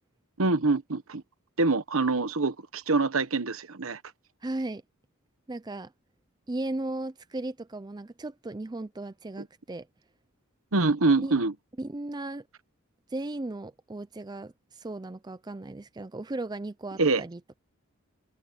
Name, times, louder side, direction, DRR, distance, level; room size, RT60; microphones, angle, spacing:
voice 1, 0.4-1.2 1.6-4.0 10.7-11.5 17.0-17.2, right 3 dB, 75° right, 1.2 m, -25 dB
voice 2, 4.4-4.8 5.5-5.9 6.5-9.9 11.2-11.3 11.8-12.4 13.1-17.6, right 2 dB, 20° right, 0.4 m, -36 dB
head